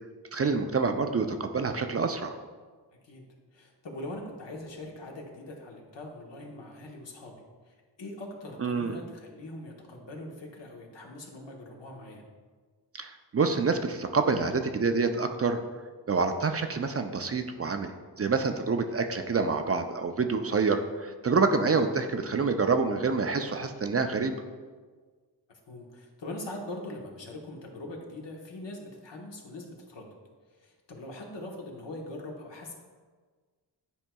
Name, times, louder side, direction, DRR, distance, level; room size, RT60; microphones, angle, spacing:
voice 1, 0.3-2.4 8.6-9.0 12.9-15.6 16.1-24.3, right 4 dB, 35° right, 6 dB, 0.4 m, -27 dB
voice 2, 3.5-12.2 18.9-19.0 21.5-21.6 25.7-30.1 30.5-32.7, left 1 dB, 75° left, 0 dB, 1.2 m, -42 dB
10.0 x 4.4 x 2.3 m, 1.5 s
wide cardioid pair, 70°, 43 cm